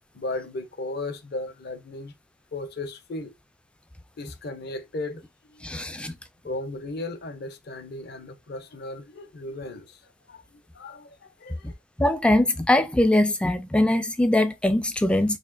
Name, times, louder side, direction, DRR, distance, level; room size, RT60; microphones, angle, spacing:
voice 1, 0.1-2.1 2.5-3.3 4.2-5.2 5.5-5.7 6.4-11.8, left 2 dB, 50° left, 0.7 m, -36 dB
voice 2, 5.6-6.1 12.0-15.4, left 1 dB, 5° left, 0.3 m, -22 dB
4.1 x 2.8 x 2.6 m
head